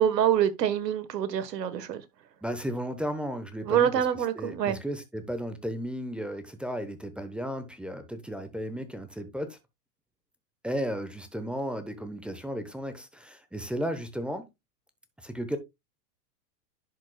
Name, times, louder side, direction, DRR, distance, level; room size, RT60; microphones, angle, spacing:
voice 1, 0.0-2.0 3.7-4.8, right 9 dB, 80° right, 1.4 m, -25 dB
voice 2, 2.4-4.1 4.3-9.6 10.6-14.5 15.2-15.6, equal, ahead, 0.9 m, -34 dB
10.5 x 6.1 x 2.2 m
hypercardioid pair, 120°, 49 cm